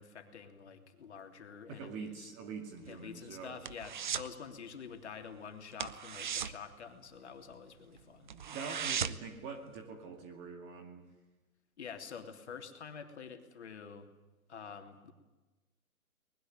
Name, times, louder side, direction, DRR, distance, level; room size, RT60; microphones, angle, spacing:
voice 1, 0.0-2.3 2.9-8.3 11.8-14.1 14.5-15.1, left 6 dB, 50° left, 5 dB, 3.3 m, -47 dB
voice 2, 1.7-3.6 8.2-11.1, right 5 dB, 20° right, 5 dB, 2.3 m, -45 dB
sound 1, 2.8-4.4 4.6-4.9 5.2-5.4 5.7-7.6 7.9-8.0 8.3-9.4 9.7-9.8, right 8 dB, 35° right, 0.9 m, -38 dB
23.5 x 20.5 x 9.2 m, 1.1 s
hypercardioid pair, 160°, 44 cm